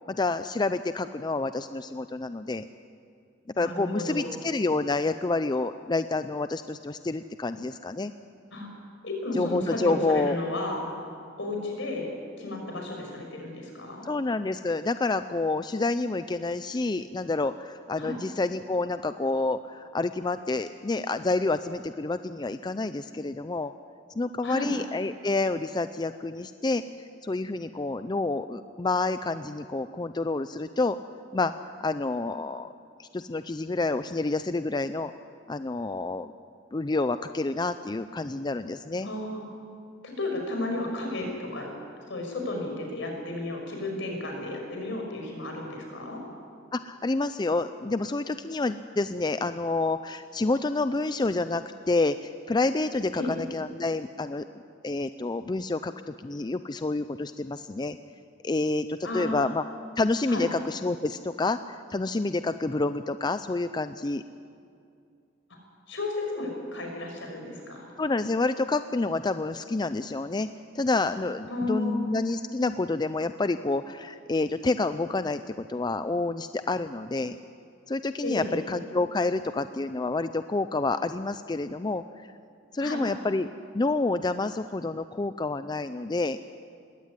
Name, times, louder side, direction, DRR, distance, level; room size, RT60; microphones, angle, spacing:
voice 1, 0.1-2.7 3.6-8.1 9.3-10.4 14.0-23.7 24.2-26.8 27.2-31.0 31.3-31.5 31.8-32.7 33.0-35.1 35.5-36.3 36.7-39.1 46.7-54.4 54.8-58.0 58.4-59.6 60.0-61.6 61.9-64.2 68.0-70.5 70.7-77.4 77.9-82.0 82.7-83.5 83.7-86.4, left 3 dB, 20° left, 11 dB, 0.4 m, -28 dB
voice 2, 3.5-4.3 8.5-8.7 9.0-10.8 11.4-12.1 12.4-14.0 18.0-18.2 24.4-24.7 39.0-39.4 40.0-41.7 42.1-46.2 53.1-53.3 59.0-59.5 60.3-60.5 65.9-67.9 71.5-72.1 78.2-78.6 82.8-83.1, left 2 dB, 70° left, 1 dB, 5.9 m, -33 dB
20.0 x 17.0 x 9.8 m, 2.4 s
head